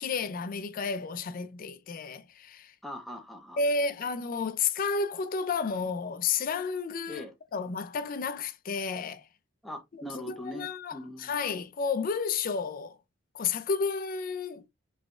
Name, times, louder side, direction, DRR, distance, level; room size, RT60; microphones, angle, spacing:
voice 1, 0.0-2.7 3.6-7.2 7.5-9.2 9.9-13.0 13.3-14.6, left 5 dB, 45° left, 0.4 m, -31 dB
voice 2, 2.8-3.6 7.1-7.3 9.6-11.3, left 1 dB, ahead, 0.6 m, -41 dB
3.2 x 3.1 x 2.4 m
head